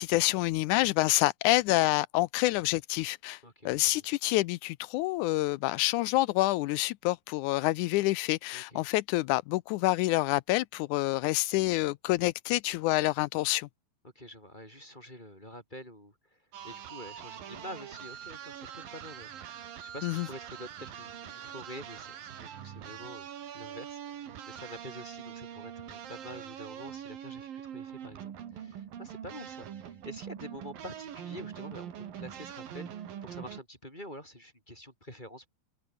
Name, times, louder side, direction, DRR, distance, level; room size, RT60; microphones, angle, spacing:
voice 1, 0.0-3.4 3.7-13.7 20.0-20.3, left 18 dB, 80° left, 1.8 m, -27 dB
voice 2, 3.4-4.0 8.5-8.8 14.2-19.5 19.8-23.3 23.5-35.5, equal, 10° left, 7.5 m, -47 dB
sound 1, 16.5-33.6, right 9 dB, 85° right, 4.0 m, -43 dB
omnidirectional pair, 3.9 m